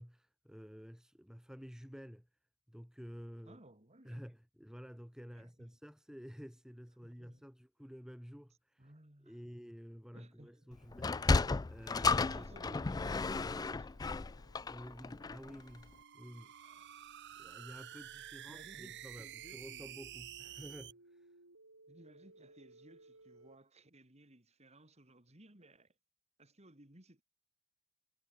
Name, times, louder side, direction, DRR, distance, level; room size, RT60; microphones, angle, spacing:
voice 1, 0.0-2.3 2.7-3.6 4.0-8.9 9.2-11.2 11.7-12.5 14.7-16.5 17.4-21.3, equal, 5° right, 2.0 m, -51 dB
voice 2, 3.4-4.3 5.3-5.8 7.0-7.4 8.8-9.4 10.1-11.4 12.0-14.0 16.6-17.0 18.5-19.9 21.9-25.9 26.4-27.2, right 1 dB, 30° right, 3.3 m, -59 dB
sound 1, 10.3-23.6, right 2 dB, 80° right, 5.1 m, -64 dB
Sliding door, 10.9-15.5, left 3 dB, 15° left, 0.3 m, -33 dB
sound 2, 15.5-20.9, right 12 dB, 50° right, 0.8 m, -50 dB
head